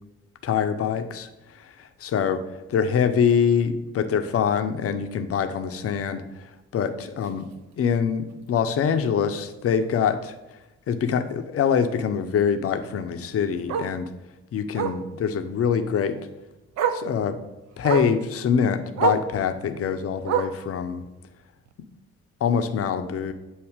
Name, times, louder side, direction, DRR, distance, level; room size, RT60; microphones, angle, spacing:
voice 1, 0.4-2.4 2.7-7.5 7.8-10.4 10.9-14.1 14.5-16.2 16.9-17.4 17.8-21.1 22.4-23.3, left 7 dB, 45° left, 8 dB, 0.7 m, -24 dB
Bark, 7.2-7.4 7.8-7.9 8.3-8.4 8.7-8.8 10.2-10.3 12.8-12.9 13.7-14.0 14.7-15.1 16.2-16.3 16.8-17.1 17.8-18.2 19.0-19.3 20.2-20.7 21.7-21.8, right 7 dB, 55° right, 0.5 m, -26 dB
8.0 x 2.8 x 4.9 m, 1.0 s
figure-of-eight pair, 40°, 33 cm